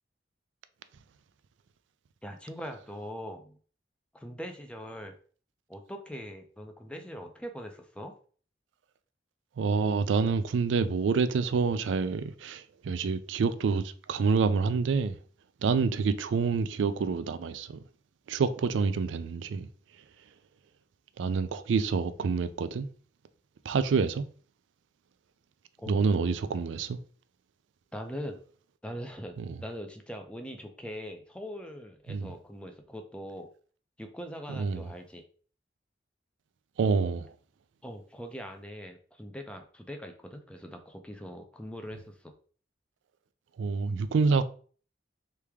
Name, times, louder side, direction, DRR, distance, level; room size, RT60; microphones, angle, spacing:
voice 1, 2.2-3.6 4.1-5.1 5.7-8.1 25.8-26.1 27.9-28.4 28.8-29.4 29.6-33.5 34.0-35.2 37.8-42.3, equal, 5° left, 0.5 m, -41 dB
voice 2, 9.6-15.2 15.6-17.8 18.3-19.7 21.2-22.9 23.6-24.3 25.9-27.0 29.4-29.6 32.1-32.3 34.5-34.8 36.8-37.3 43.6-44.4, right 5 dB, 80° right, 0.4 m, -27 dB
3.4 x 3.2 x 3.4 m
head